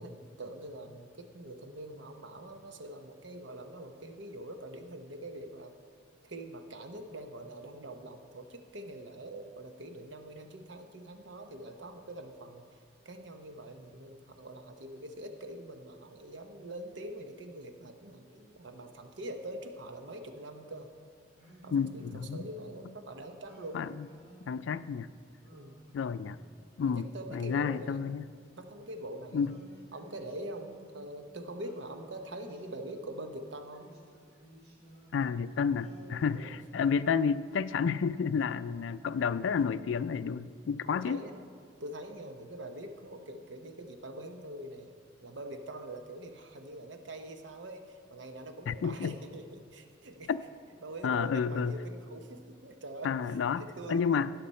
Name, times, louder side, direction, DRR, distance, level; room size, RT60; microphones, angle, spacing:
voice 1, 0.0-5.7 6.2-12.6 13.0-20.9 21.6-24.0 25.5-25.8 26.8-28.0 28.6-29.5 29.9-33.9 36.3-36.5 40.9-41.3 41.8-44.9 45.2-50.3 50.8-54.3, right 1 dB, 75° right, 6 dB, 0.9 m, -44 dB
Singing, 21.3-22.8 23.4-24.8 25.4-26.7 27.3-28.9 29.4-31.2 31.6-33.2 33.7-35.4 35.8-37.4, equal, 55° right, 2.9 m, -56 dB
voice 2, 21.7-22.4 23.7-24.1 24.5-25.1 25.9-26.4 26.8-28.2 29.3-29.5 35.1-41.2 48.7-49.1 50.3-50.4 51.0-51.8 53.0-54.3, left 6 dB, 80° left, 15 dB, 0.3 m, -30 dB
16.5 x 5.9 x 4.2 m, 2.1 s
head